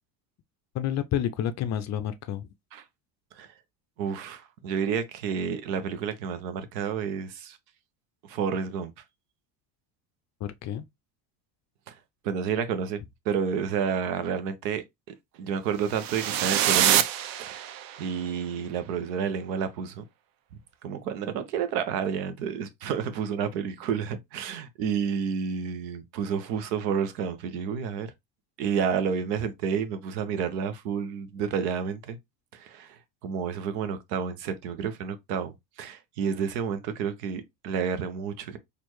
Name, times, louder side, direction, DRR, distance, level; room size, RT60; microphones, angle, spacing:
voice 1, 0.7-2.5 10.4-10.8, left 10 dB, 35° left, 0.4 m, -29 dB
voice 2, 4.0-7.6 8.3-8.9 11.9-12.0 12.2-14.8 15.4-17.0 17.4-17.7 18.0-20.0 20.8-28.1 28.6-32.2 32.5-38.6, right 7 dB, 75° right, 0.9 m, -30 dB
sound 1, 15.9-18.1, right 11 dB, 45° right, 0.6 m, -25 dB
4.3 x 2.6 x 3.0 m
hypercardioid pair, 80°, 50 cm